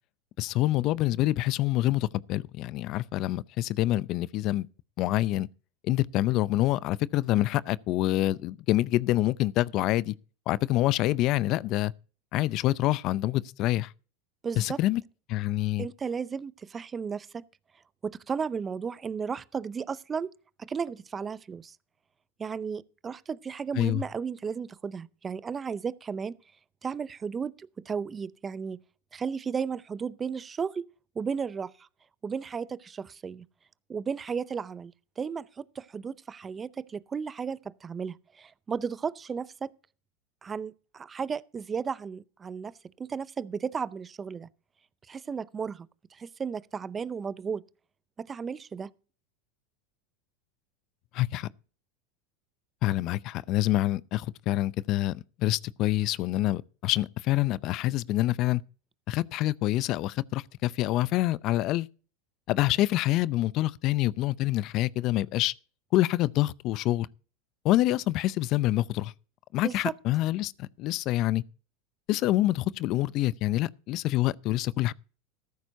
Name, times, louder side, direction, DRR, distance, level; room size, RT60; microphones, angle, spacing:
voice 1, 0.4-4.7 5.0-5.5 5.8-10.1 10.5-11.9 12.3-13.9 14.6-15.0 15.3-15.9 23.8-24.0 51.1-51.5 52.8-58.6 59.1-61.9 62.5-65.5 65.9-67.1 67.6-69.1 69.5-71.4 72.1-74.9, left 16 dB, 50° left, 0.5 m, -26 dB
voice 2, 14.4-14.8 15.8-17.4 18.0-20.3 20.6-21.8 22.4-26.4 26.8-28.8 29.1-30.9 31.2-31.9 32.2-33.5 33.9-39.7 40.4-44.5 45.1-47.6 48.2-48.9 69.6-69.8, right 6 dB, 25° right, 0.5 m, -34 dB
14.0 x 12.5 x 2.7 m
hypercardioid pair, 105°, 0 cm